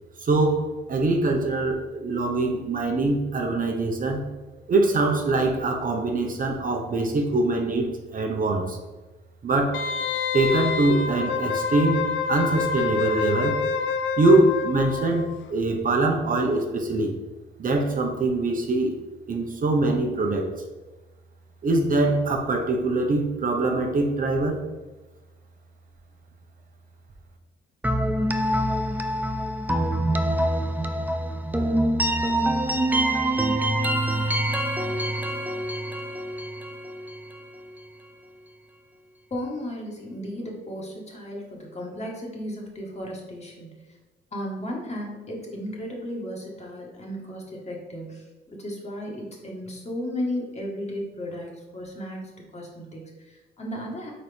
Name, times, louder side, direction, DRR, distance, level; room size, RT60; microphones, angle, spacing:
voice 1, 0.2-4.2 4.7-8.8 9.4-9.8 10.3-13.6 14.2-17.1 17.6-19.0 19.3-20.5 21.6-24.6, right 2 dB, 45° right, 2 dB, 0.9 m, -23 dB
Wind instrument woodwind instrument, 9.7-15.3 15.6-15.7, left 5 dB, 75° left, 0.6 m, -27 dB
sound 1, 27.8-37.6, right 1 dB, 10° right, 0.5 m, -25 dB
voice 2, 39.3-43.8 44.3-54.1, equal, 35° left, -1 dB, 1.7 m, -35 dB
4.4 x 4.2 x 5.1 m, 1.2 s
cardioid pair, 90°, 20 cm